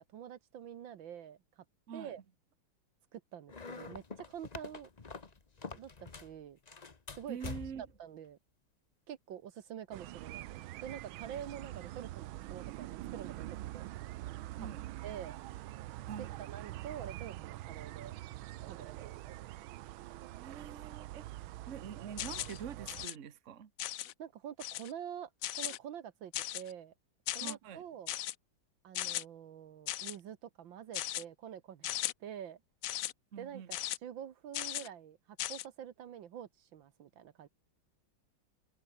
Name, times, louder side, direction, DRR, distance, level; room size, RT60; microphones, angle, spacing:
voice 1, 0.0-1.6 1.9-2.2 3.1-4.9 5.7-6.6 7.2-7.4 7.8-8.4 9.1-13.9 14.6-14.7 15.0-15.4 16.2-18.2 18.7-19.1 24.2-26.9 27.3-28.2 28.8-32.6 33.4-37.5, right 9 dB, 70° right, 1.8 m, -47 dB
sound 1, 3.5-6.4 6.7-8.0, left 4 dB, 25° left, 1.0 m, -46 dB
voice 2, 7.3-7.9 14.6-14.8 16.1-16.3 20.4-21.3 21.7-23.7 27.4-27.8 33.3-33.7, right 7 dB, 40° right, 1.4 m, -45 dB
sound 2, 9.9-23.1, right 16 dB, 85° right, 1.5 m, -45 dB
sound 3, 22.2-22.6 22.9-23.1 23.8-24.1 24.6-24.9 25.4-25.8 26.3-26.7 27.3-27.5 28.1-28.3 28.9-29.2 29.9-30.2 30.9-31.2 31.8-32.1 32.8-33.1 33.7-34.0 34.5-34.9 35.4-35.6, left 13 dB, 90° left, 0.7 m, -37 dB
omnidirectional pair, 2.2 m